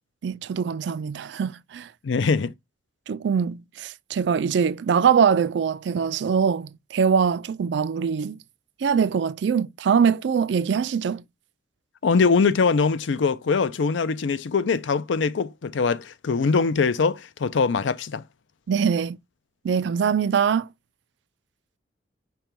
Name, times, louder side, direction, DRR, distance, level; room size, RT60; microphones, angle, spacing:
voice 1, 0.2-1.9 3.1-8.4 8.8-11.2 18.7-19.2 19.6-20.7, right 6 dB, 70° right, 0.4 m, -23 dB
voice 2, 2.0-2.5 12.0-18.2, left 4 dB, 80° left, 0.5 m, -22 dB
5.2 x 2.2 x 4.5 m
head